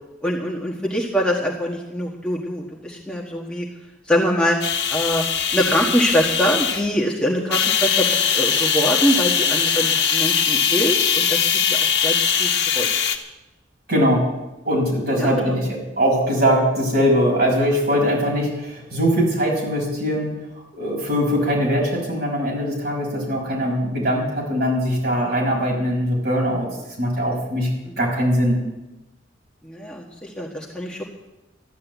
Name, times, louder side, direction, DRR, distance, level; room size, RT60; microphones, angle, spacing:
voice 1, 0.2-3.7 4.1-4.6 4.9-5.2 5.5-11.4 11.7-12.9 15.2-15.5 27.8-28.0 29.6-31.0, equal, 5° left, -2 dB, 1.5 m, -24 dB
sound 1, 4.6-6.9 7.5-13.2, left 7 dB, 55° left, 1.4 m, -21 dB
voice 2, 13.9-14.2 14.6-20.3 20.7-26.7 27.0-27.7 28.0-28.6, equal, 55° right, -2 dB, 6.0 m, -21 dB
14.0 x 11.0 x 8.3 m, 1.0 s
head